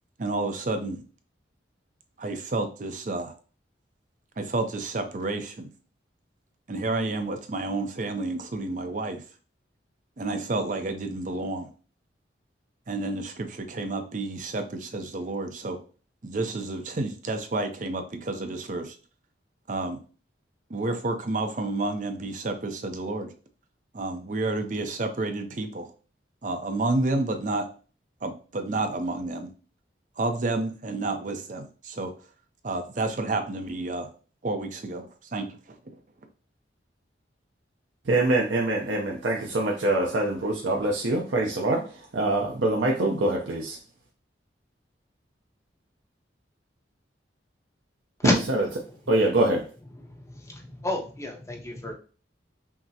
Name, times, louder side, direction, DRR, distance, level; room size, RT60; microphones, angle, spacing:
voice 1, 0.2-1.0 2.2-3.3 4.4-5.7 6.7-9.2 10.2-11.7 12.9-15.8 16.2-19.0 19.7-20.0 20.7-23.3 23.9-25.9 26.4-27.7 28.2-29.5 30.2-32.1 32.6-34.1 34.4-35.6, right 2 dB, 45° right, 7 dB, 0.5 m, -30 dB
voice 2, 38.1-41.8 42.1-43.8 49.1-49.6, right 2 dB, 85° right, -1 dB, 0.6 m, -24 dB
voice 3, 48.2-48.5 48.9-49.2 49.9-51.9, left 2 dB, 15° left, 1 dB, 0.7 m, -31 dB
5.8 x 2.0 x 2.7 m, 0.38 s
head